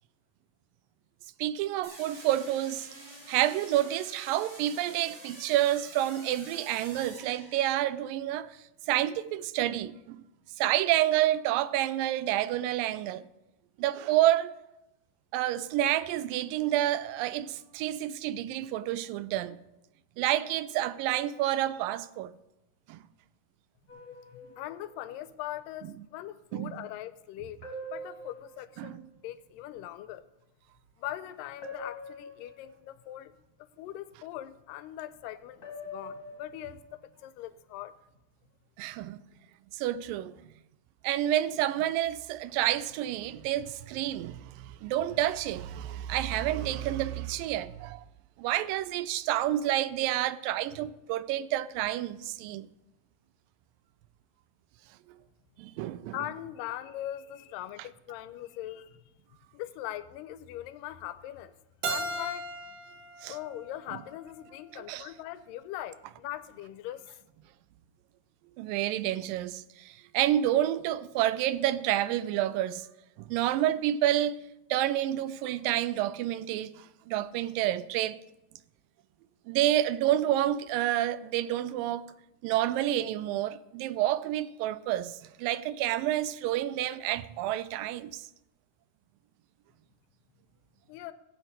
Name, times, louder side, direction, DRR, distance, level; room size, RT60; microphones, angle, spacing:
voice 1, 1.4-2.9 3.3-8.5 8.9-10.2 10.6-13.3 13.8-14.5 15.3-19.6 20.2-22.3 22.9-23.0 26.5-26.7 28.8-29.0 38.8-39.2 39.7-40.3 41.0-48.0 48.4-52.7 55.6-56.2 63.2-63.4 64.7-65.1 68.6-72.9 73.2-74.4 74.7-78.2 79.5-82.1 82.4-88.3, right 13 dB, 90° right, 2.3 m, -29 dB
sound 1, 1.8-8.0, right 1 dB, 25° right, 4.2 m, -48 dB
sound 2, 23.9-25.2 27.6-29.2 31.6-33.1 35.6-37.1, left 1 dB, 30° left, 2.1 m, -44 dB
voice 2, 24.3-27.6 27.8-30.2 31.0-33.3 33.6-37.9 56.1-59.1 59.5-61.5 61.9-62.4 63.3-67.1 90.9-91.1, left 13 dB, 85° left, 2.2 m, -41 dB
Keyboard (musical), 61.8-64.7, right 2 dB, 70° right, 2.4 m, -37 dB
16.0 x 8.1 x 4.0 m
omnidirectional pair, 3.9 m